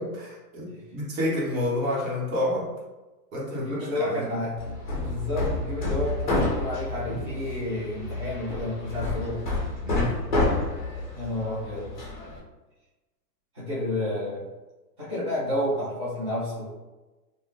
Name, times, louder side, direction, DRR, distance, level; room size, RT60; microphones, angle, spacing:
voice 1, 0.0-2.7 3.3-4.4 9.8-10.2, left 1 dB, 55° right, -5 dB, 1.3 m, -29 dB
voice 2, 3.5-4.7 5.0-9.4 11.1-12.0 13.5-14.4 15.0-16.7, left 1 dB, 20° right, -10 dB, 0.5 m, -30 dB
Hammer, 4.6-12.4, left 2 dB, 30° left, 0.4 m, -29 dB
3.4 x 2.4 x 2.5 m, 1.1 s
hypercardioid pair, 170°, 49 cm